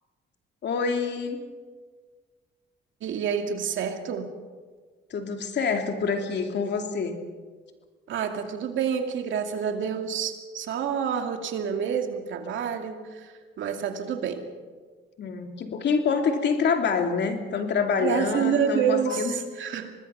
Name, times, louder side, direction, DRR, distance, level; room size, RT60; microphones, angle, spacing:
voice 1, 0.6-1.4 5.1-7.2 15.2-19.3, left 5 dB, 60° left, 4 dB, 2.8 m, -26 dB
voice 2, 3.0-4.3 8.1-14.5 18.0-19.9, right 7 dB, 75° right, 5 dB, 2.4 m, -28 dB
24.5 x 19.5 x 5.8 m, 1.5 s
cardioid pair, 90°, 20 cm